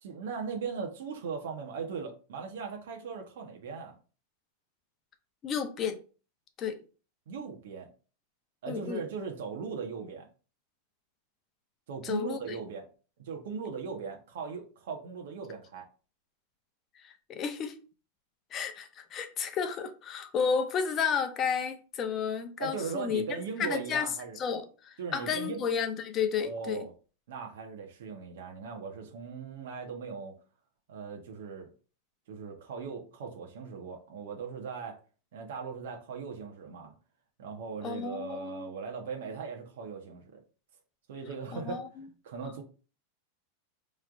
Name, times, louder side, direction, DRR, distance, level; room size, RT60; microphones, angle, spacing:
voice 1, 0.0-3.9 7.3-7.9 8.6-10.3 11.9-12.9 13.2-15.8 22.6-24.4 25.0-25.6 26.4-26.9 27.3-30.4 30.9-31.7 32.3-35.0 35.3-36.9 37.4-40.4 41.1-41.8 42.2-42.6, right 5 dB, 75° right, 0.9 m, -39 dB
voice 2, 5.4-6.0 6.6-6.8 8.7-9.0 12.0-12.6 17.0-17.8 18.5-23.2 23.6-24.1 24.4-26.8 37.8-38.7 41.5-41.9, left 6 dB, 25° left, 0.6 m, -32 dB
5.0 x 3.2 x 2.4 m
supercardioid pair, 155°, 0 cm